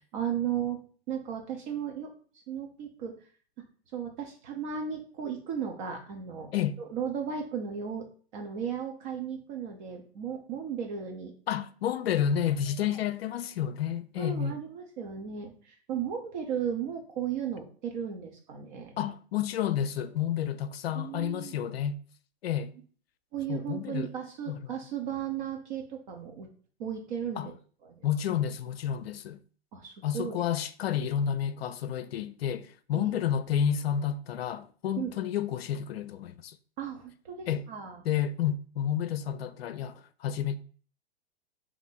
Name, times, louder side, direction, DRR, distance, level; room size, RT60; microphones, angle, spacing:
voice 1, 0.1-0.8 1.1-3.1 3.9-6.5 6.9-8.1 8.3-11.3 12.8-13.0 14.2-18.9 20.9-21.5 23.3-26.5 26.8-27.5 27.8-28.0 29.7-30.4 32.9-33.2 35.0-35.1 36.8-38.0, right 8 dB, 45° right, 0.9 m, -35 dB
voice 2, 11.5-14.5 19.0-22.0 22.4-22.7 23.5-24.1 24.5-24.6 27.4-27.5 28.0-29.4 30.0-36.6 37.5-37.7 38.0-40.6, left 9 dB, 65° left, 0.5 m, -30 dB
3.4 x 3.0 x 4.1 m
hypercardioid pair, 110°, 32 cm